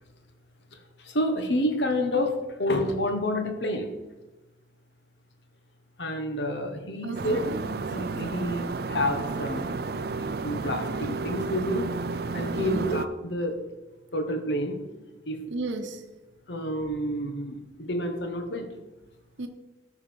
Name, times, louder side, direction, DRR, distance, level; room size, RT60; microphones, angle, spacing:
voice 1, 1.0-3.9 6.0-9.6 10.2-11.9 12.3-13.6 14.1-14.8 15.3-15.4 16.5-18.7, left 1 dB, 70° left, 5 dB, 1.4 m, -29 dB
voice 2, 7.0-7.6 12.5-12.9 15.5-16.0 19.4-19.5, right 2 dB, 80° right, 7 dB, 0.8 m, -34 dB
sound 1, 7.1-13.1, right 4 dB, 55° right, 0.5 m, -32 dB
13.0 x 4.9 x 5.4 m, 1.1 s
head